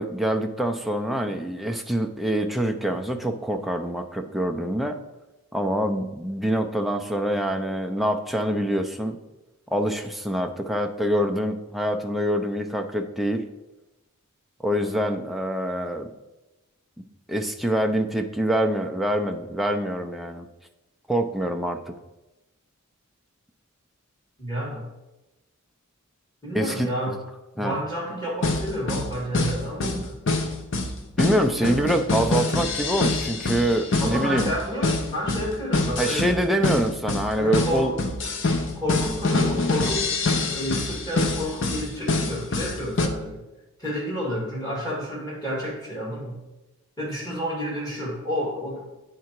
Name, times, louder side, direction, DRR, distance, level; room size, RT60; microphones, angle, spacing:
voice 1, 0.0-5.0 5.5-9.2 9.7-13.4 14.6-16.1 17.3-20.5 21.1-21.9 26.5-27.2 27.6-27.7 31.2-34.5 36.0-37.9, equal, ahead, 4 dB, 0.4 m, -25 dB
voice 2, 24.4-24.9 26.4-27.2 27.5-30.1 31.5-31.9 34.0-36.3 37.4-37.9 38.7-43.4 43.8-46.4 47.0-48.8, equal, 15° left, -5 dB, 2.1 m, -30 dB
sound 1, 28.4-43.1, left 3 dB, 55° left, 0.7 m, -25 dB
9.2 x 3.7 x 4.5 m, 1.0 s
head